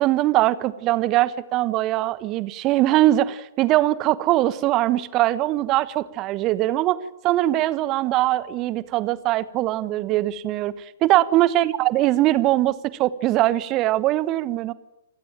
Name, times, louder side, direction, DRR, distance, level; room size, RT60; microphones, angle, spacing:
voice 1, 0.0-7.0 7.2-10.7 11.0-14.7, right 15 dB, 30° right, 18 dB, 1.2 m, -21 dB
28.5 x 16.5 x 8.9 m, 0.90 s
figure-of-eight pair, 110°, 0 cm